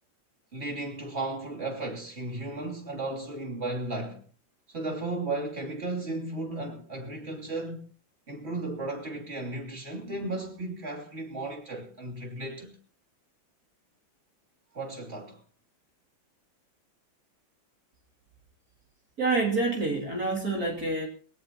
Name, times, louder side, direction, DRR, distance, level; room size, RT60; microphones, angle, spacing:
voice 1, 0.5-4.2 4.7-7.9 8.3-12.8 14.7-15.4, right 2 dB, 30° right, 3.3 m, -35 dB
voice 2, 19.2-21.1, right 3 dB, 50° right, 3.2 m, -27 dB
22.0 x 17.5 x 2.9 m
omnidirectional pair, 2.1 m